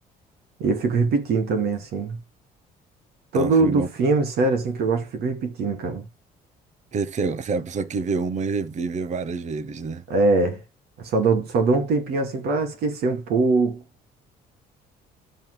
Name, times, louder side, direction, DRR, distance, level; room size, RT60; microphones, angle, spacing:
voice 1, 0.6-2.2 3.3-6.0 10.1-10.6 11.0-13.8, right 3 dB, 70° right, 2.7 m, -22 dB
voice 2, 3.3-3.9 6.9-10.0, right 4 dB, 45° right, 1.0 m, -27 dB
13.0 x 7.4 x 2.2 m
cardioid pair, 110°, 17 cm